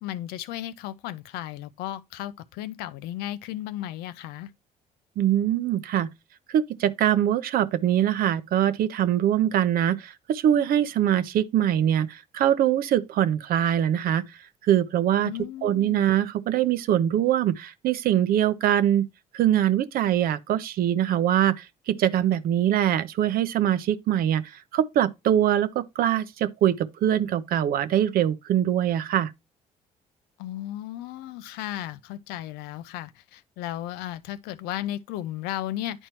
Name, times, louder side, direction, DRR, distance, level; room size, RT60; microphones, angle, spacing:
voice 1, 0.0-4.5 15.2-16.0 30.4-36.1, left 13 dB, 80° left, 0.5 m, -35 dB
voice 2, 5.2-6.1 6.5-14.2 14.6-15.3 15.6-19.1 19.3-29.3, right 11 dB, 65° right, 0.6 m, -23 dB
9.9 x 4.4 x 2.9 m
supercardioid pair, 60°, 16 cm